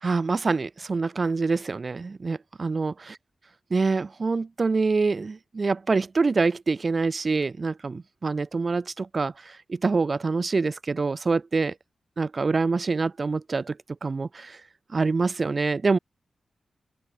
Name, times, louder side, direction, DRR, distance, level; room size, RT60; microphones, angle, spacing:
voice 1, 0.0-2.9 3.7-11.7 12.2-13.8 14.0-14.6 14.9-16.0, right 4 dB, 40° right, 0.3 m, -25 dB
open air
wide cardioid pair, 135°, 0 cm